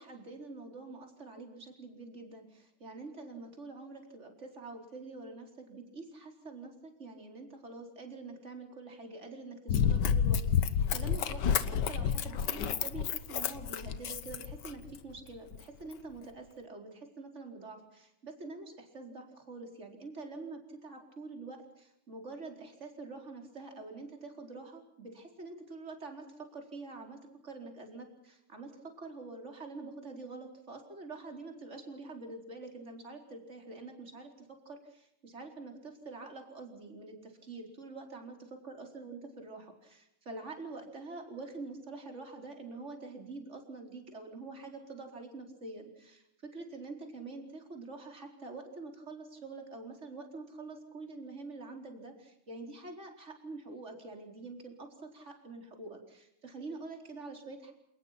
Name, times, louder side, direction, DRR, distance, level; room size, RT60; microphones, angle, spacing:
voice 1, 0.0-38.4 38.6-57.7, right 3 dB, 20° right, 3 dB, 4.5 m, -46 dB
Run, 9.7-15.0 15.5-15.6, left 7 dB, 70° left, 1.0 m, -30 dB
28.5 x 19.5 x 5.9 m, 0.80 s
omnidirectional pair, 3.6 m